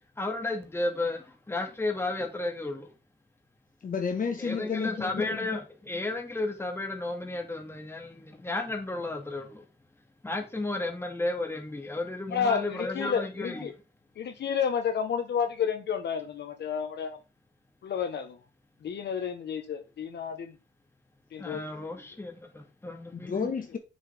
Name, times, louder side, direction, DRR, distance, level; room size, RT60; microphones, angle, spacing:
voice 1, 0.2-2.9 4.4-9.7 10.2-13.6 21.4-23.5, left 2 dB, 10° left, 2.2 m, -33 dB
voice 2, 3.8-5.4 23.1-23.8, left 6 dB, 45° left, 1.5 m, -31 dB
voice 3, 12.3-13.7 14.2-17.2 17.8-18.4 18.8-20.5 21.3-21.6, left 7 dB, 60° left, 1.3 m, -30 dB
7.2 x 6.7 x 3.6 m
cardioid pair, 90°, 20 cm